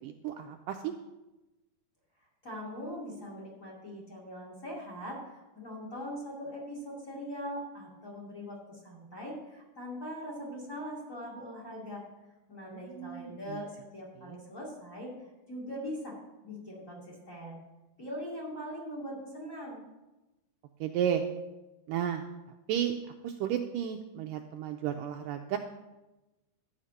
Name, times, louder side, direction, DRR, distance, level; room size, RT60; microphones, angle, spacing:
voice 1, 0.0-0.9 12.7-13.6 14.3-14.4 20.8-21.2 21.9-22.2 22.7-23.0 23.2-25.6, right 9 dB, 85° right, 4 dB, 1.9 m, -33 dB
voice 2, 2.4-12.0 12.5-15.1 15.5-16.2 16.4-17.6 18.0-19.8, equal, 25° left, -2 dB, 2.4 m, -41 dB
12.5 x 5.7 x 8.8 m, 1.0 s
omnidirectional pair, 4.5 m